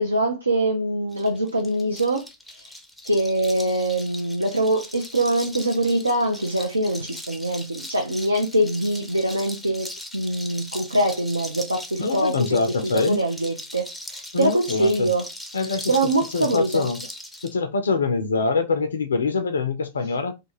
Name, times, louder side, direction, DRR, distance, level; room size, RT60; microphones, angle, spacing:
voice 1, 0.0-2.7 3.0-12.6 12.9-15.3 15.9-16.9, right 1 dB, 80° right, 0.4 m, -23 dB
sound 1, 1.1-17.5, left 1 dB, ahead, 0.5 m, -39 dB
voice 2, 12.0-13.2 14.3-15.1 15.5-16.0 16.3-17.1 17.4-20.5, left 4 dB, 70° left, 0.3 m, -24 dB
2.3 x 2.3 x 2.9 m
figure-of-eight pair, 90°, 0 cm